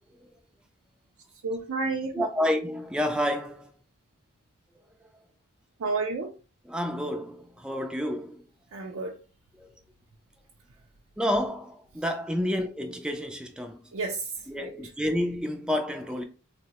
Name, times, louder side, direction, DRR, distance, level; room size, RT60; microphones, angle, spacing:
voice 1, 1.4-2.3 5.8-6.3 8.7-9.2 13.9-14.7, right 3 dB, 85° right, 0.5 m, -31 dB
voice 2, 2.1-3.7 6.7-8.5 9.6-9.7 11.2-13.9 14.5-16.2, equal, 5° right, 0.3 m, -29 dB
3.7 x 2.0 x 2.8 m
head